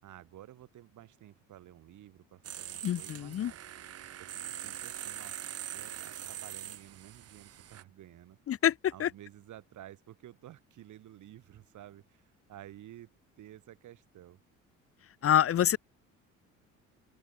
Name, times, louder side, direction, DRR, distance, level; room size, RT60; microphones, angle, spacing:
voice 1, 0.0-3.6 4.2-5.4 5.7-8.4 8.9-14.4, right 13 dB, 65° right, 6.4 m, -52 dB
sound 1, 2.4-7.8, right 11 dB, 50° right, 1.1 m, -43 dB
voice 2, 2.8-3.5 8.5-8.7 9.0-9.1 15.2-15.8, left 10 dB, 45° left, 0.8 m, -26 dB
open air
supercardioid pair, 75°, 32 cm